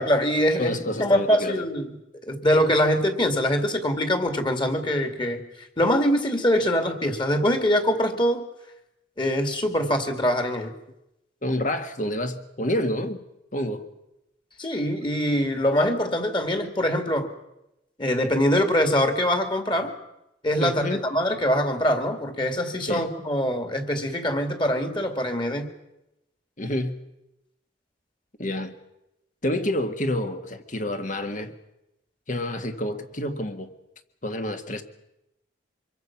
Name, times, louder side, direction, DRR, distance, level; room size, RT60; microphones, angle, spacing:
voice 1, 0.0-1.9 2.3-5.4 5.8-8.4 9.2-10.7 14.6-17.3 18.0-19.9 20.4-25.7, equal, 25° left, 6 dB, 2.5 m, -23 dB
voice 2, 0.6-1.6 11.4-13.2 13.5-13.8 20.6-21.1 22.8-23.1 26.6-27.0 28.4-28.8 29.4-31.5 32.3-33.7 34.2-34.8, left 1 dB, 40° left, 7 dB, 1.8 m, -28 dB
26.0 x 22.5 x 6.0 m, 0.90 s
head